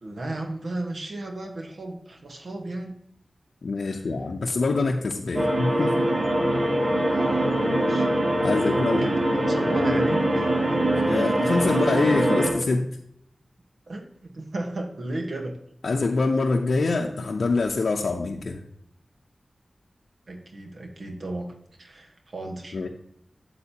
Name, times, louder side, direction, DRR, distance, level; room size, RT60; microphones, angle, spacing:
voice 1, 0.0-3.0 3.8-4.0 7.0-8.1 8.4-10.8 13.9-15.6 20.3-21.5 21.8-22.9, right 2 dB, 80° right, 3 dB, 1.2 m, -35 dB
voice 2, 3.6-6.1 8.4-9.1 11.1-12.9 15.8-18.6 22.7-22.9, left 3 dB, 90° left, 1 dB, 0.6 m, -25 dB
sound 1, 5.3-12.5, right 1 dB, 50° right, 2.6 m, -23 dB
8.2 x 7.4 x 2.8 m, 0.70 s
wide cardioid pair, 70°, 0 cm